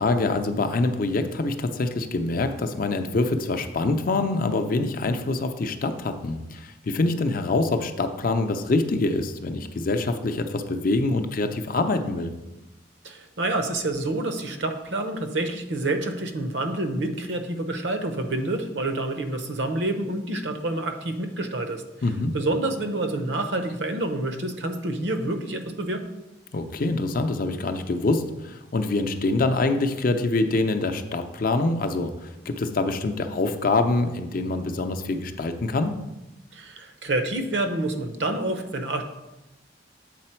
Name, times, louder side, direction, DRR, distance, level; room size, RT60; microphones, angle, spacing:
voice 1, 0.0-12.3 22.0-22.4 26.5-36.0, left 2 dB, 50° left, 7 dB, 0.5 m, -25 dB
voice 2, 13.0-21.8 22.3-26.0 36.5-39.0, right 2 dB, 70° right, 7 dB, 0.7 m, -28 dB
7.7 x 4.1 x 4.4 m, 0.98 s
head